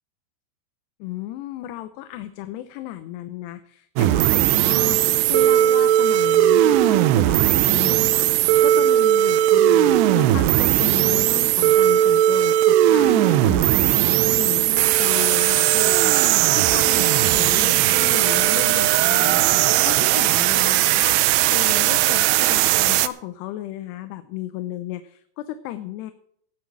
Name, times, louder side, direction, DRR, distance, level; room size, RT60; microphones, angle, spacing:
voice 1, 1.0-26.1, left 14 dB, 80° left, 10 dB, 2.8 m, -34 dB
sound 1, 4.0-23.1, right 13 dB, 80° right, 2.6 m, -18 dB
18.0 x 6.8 x 6.0 m, 0.65 s
omnidirectional pair, 5.0 m